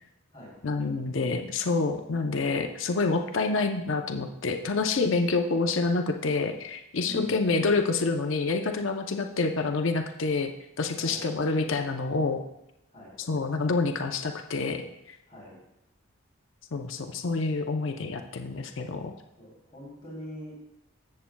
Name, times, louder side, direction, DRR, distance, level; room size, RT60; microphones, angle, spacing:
voice 1, 0.6-10.5 10.8-12.4 13.3-14.8 16.7-19.1, left 3 dB, 65° left, 5 dB, 0.6 m, -27 dB
voice 2, 7.1-7.5 11.0-11.2 12.9-13.1 15.3-15.6 19.4-20.5, left 1 dB, 25° left, -9 dB, 2.9 m, -42 dB
14.0 x 7.4 x 2.2 m, 0.88 s
head